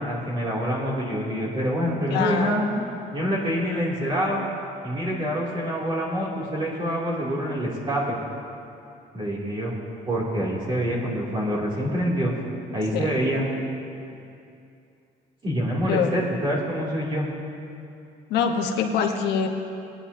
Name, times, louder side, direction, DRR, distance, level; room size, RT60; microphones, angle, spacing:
voice 1, 0.0-2.7 3.1-4.4 4.8-8.2 9.1-9.7 10.1-12.3 12.7-13.4 15.4-17.3, equal, 30° right, -5 dB, 2.7 m, -26 dB
voice 2, 2.1-2.9 12.9-13.1 15.9-16.1 18.3-19.5, left 6 dB, 80° left, 4 dB, 1.1 m, -25 dB
19.5 x 9.8 x 2.7 m, 2.6 s
cardioid pair, 110°, 17 cm